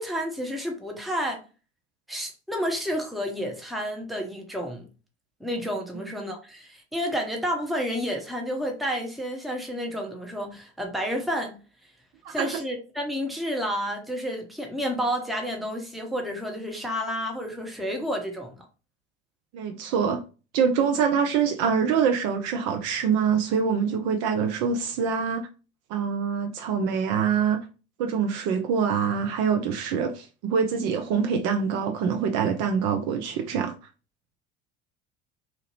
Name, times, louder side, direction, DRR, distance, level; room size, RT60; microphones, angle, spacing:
voice 1, 0.0-1.4 2.1-4.9 5.4-11.6 12.3-18.5, equal, ahead, 0.7 m, -30 dB
voice 2, 19.5-20.2 20.5-25.4 25.9-27.7 28.0-33.7, right 6 dB, 50° right, 0.5 m, -25 dB
2.8 x 2.5 x 2.9 m
figure-of-eight pair, 65°, 36 cm